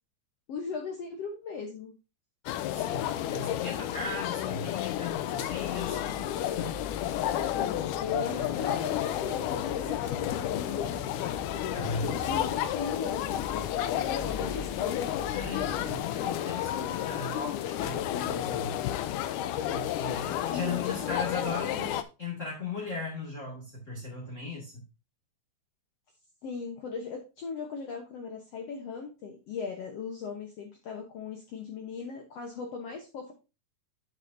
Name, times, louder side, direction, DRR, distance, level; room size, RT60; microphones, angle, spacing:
voice 1, 0.5-1.9 7.6-11.0 12.0-15.1 18.0-18.5 20.5-21.1 26.4-33.3, left 5 dB, 60° left, 2 dB, 1.8 m, -38 dB
sound 1, 2.5-22.0, left 12 dB, 85° left, 2.1 m, -31 dB
voice 2, 2.7-6.8 7.3-7.4 11.7-12.2 15.3-18.8 19.7-24.8, left 3 dB, 25° left, -4 dB, 2.0 m, -37 dB
sound 2, 5.5-16.0, left 2 dB, 20° right, 1.0 m, -44 dB
8.1 x 7.9 x 2.7 m, 0.29 s
omnidirectional pair, 3.6 m